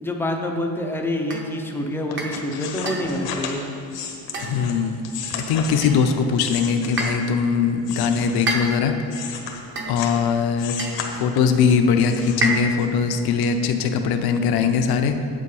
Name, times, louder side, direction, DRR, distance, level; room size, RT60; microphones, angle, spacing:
voice 1, 0.0-3.6, left 1 dB, 5° left, 2 dB, 0.4 m, -26 dB
sound 1, 1.3-1.5 2.2-2.4 2.9-3.2 4.3-4.8 5.8-6.2 7.0-7.3 8.5-9.0 9.8-10.1 10.8-11.1 12.4-12.9, right 2 dB, 25° right, 0.8 m, -28 dB
sound 2, 2.1-7.4 7.8-10.2 10.6-11.6 12.0-13.1 13.4-13.5, left 6 dB, 80° left, 1.2 m, -34 dB
voice 2, 4.4-5.1 5.3-8.9 9.9-10.7 11.2-15.1, left 6 dB, 60° left, 6 dB, 0.7 m, -21 dB
8.5 x 7.7 x 4.8 m, 2.9 s
cardioid pair, 180°, 42 cm